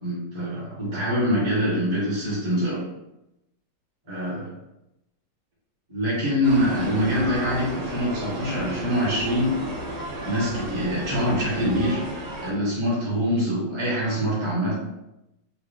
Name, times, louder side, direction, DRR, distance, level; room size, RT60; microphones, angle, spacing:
voice 1, 0.0-2.8 4.1-4.5 5.9-9.5 10.2-12.0 12.4-14.7, equal, 15° right, -9 dB, 1.3 m, -24 dB
sound 1, 6.4-12.5, right 2 dB, 50° right, 0.8 m, -33 dB
4.0 x 2.4 x 3.6 m, 0.90 s
omnidirectional pair, 2.0 m